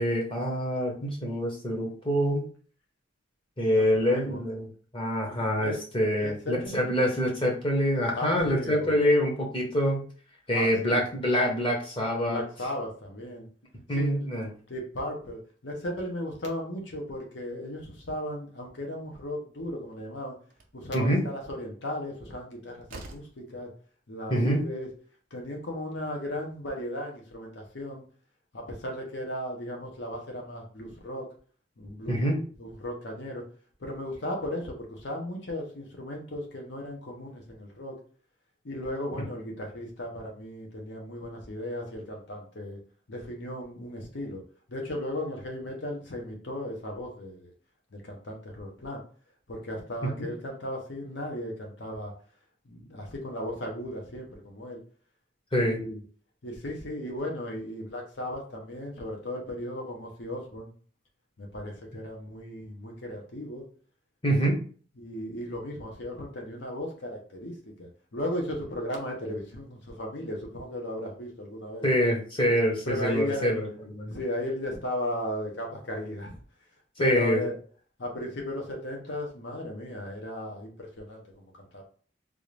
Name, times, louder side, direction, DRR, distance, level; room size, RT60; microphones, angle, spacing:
voice 1, 0.0-2.5 3.6-4.7 4.9-10.0 10.5-12.4 13.9-14.5 20.9-21.2 24.3-24.6 32.1-32.4 50.2-50.3 55.5-55.8 64.2-64.6 71.8-73.7 73.9-74.2 77.0-77.4, equal, 25° left, -1 dB, 0.9 m, -25 dB
voice 2, 3.7-4.4 5.3-5.8 6.2-6.9 8.1-9.0 10.5-11.0 12.2-13.5 13.9-14.3 14.7-20.3 20.7-23.7 24.1-24.9 25.3-28.0 28.5-31.3 31.8-32.2 32.6-33.5 33.8-38.0 38.6-42.8 43.1-44.4 44.7-47.5 47.9-49.0 49.5-52.1 52.6-54.8 55.6-56.0 56.4-60.7 61.4-63.6 65.0-71.9 72.8-73.5 74.1-76.4 77.0-77.6 78.0-81.8, left 1 dB, 60° left, 1 dB, 0.9 m, -36 dB
Slam, 20.5-20.8 22.4-22.5 22.9-23.4, right 2 dB, 45° right, 0.6 m, -45 dB
3.6 x 2.5 x 3.2 m, 0.43 s
head